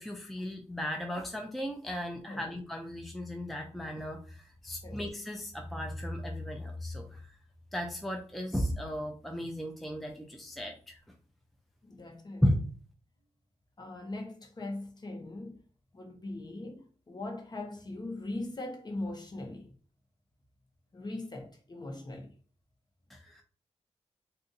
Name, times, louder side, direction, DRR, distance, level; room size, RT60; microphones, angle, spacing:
voice 1, 0.0-7.2 7.7-11.0 12.4-12.5 23.1-23.4, equal, ahead, 0.5 m, -35 dB
voice 2, 11.9-12.4 13.8-15.6 15.9-19.7 20.9-22.3, left 2 dB, 35° left, 0.9 m, -40 dB
2.6 x 2.5 x 3.8 m
cardioid pair, 80°, 12 cm